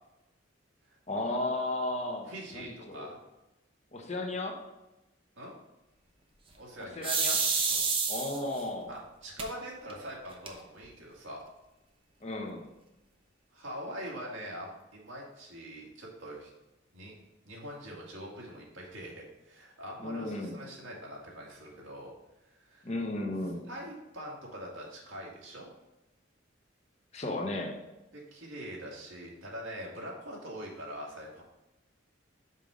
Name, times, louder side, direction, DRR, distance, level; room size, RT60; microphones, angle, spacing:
voice 1, 1.1-3.1 3.9-4.6 7.0-7.4 8.1-8.9 12.2-12.6 20.0-20.6 22.8-23.6 27.1-27.7, left 2 dB, 35° left, 1 dB, 1.0 m, -34 dB
voice 2, 2.3-3.2 5.4-5.5 6.6-7.1 7.7-7.8 8.9-11.4 13.5-16.5 16.9-17.1 17.4-22.1 22.5-22.9 23.7-25.7 28.1-31.4, equal, 85° right, -3 dB, 2.1 m, -43 dB
sound 1, 7.0-8.6 9.4-9.5 9.9-10.0 10.3-10.9, right 5 dB, 25° right, 0.7 m, -28 dB
5.5 x 5.3 x 4.9 m, 0.97 s
head